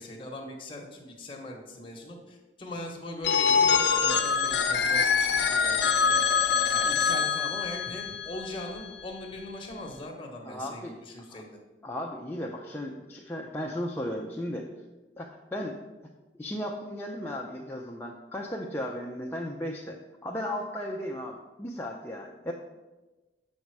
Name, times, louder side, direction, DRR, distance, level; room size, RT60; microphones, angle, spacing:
voice 1, 0.0-6.2 6.7-11.6, left 1 dB, 30° left, 0 dB, 1.2 m, -40 dB
Telephone, 3.2-9.0, left 6 dB, 60° left, 0.7 m, -25 dB
voice 2, 10.4-11.4 11.8-14.6 15.2-15.8 16.4-22.5, left 1 dB, 10° left, -1 dB, 0.5 m, -35 dB
7.4 x 5.4 x 4.6 m, 1.2 s
head